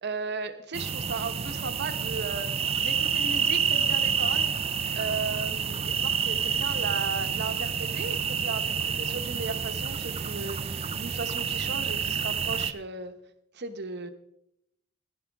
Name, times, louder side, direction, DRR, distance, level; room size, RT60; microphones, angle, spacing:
voice 1, 0.0-4.5 4.9-13.2 13.5-14.1, right 4 dB, 50° right, 8 dB, 1.1 m, -36 dB
sound 1, 0.7-12.7, right 7 dB, 30° right, 0.5 m, -28 dB
16.0 x 10.5 x 3.6 m, 0.80 s
head